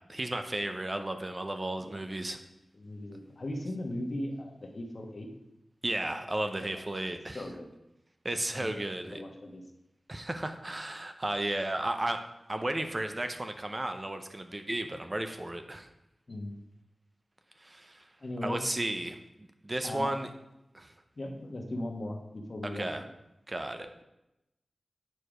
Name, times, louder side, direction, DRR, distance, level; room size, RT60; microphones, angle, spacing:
voice 1, 0.1-2.4 5.8-7.4 8.2-9.2 10.1-15.9 17.6-18.0 18.4-20.3 20.7-20.9 22.7-23.0 23.5-24.0, right 1 dB, 30° right, 7 dB, 0.6 m, -34 dB
voice 2, 2.7-5.3 6.7-6.8 7.3-7.7 8.5-9.6 16.3-16.6 18.2-18.6 19.8-20.1 21.2-23.1, left 1 dB, 50° left, 3 dB, 1.2 m, -38 dB
8.9 x 4.7 x 5.0 m, 0.90 s
wide cardioid pair, 85°, 0 cm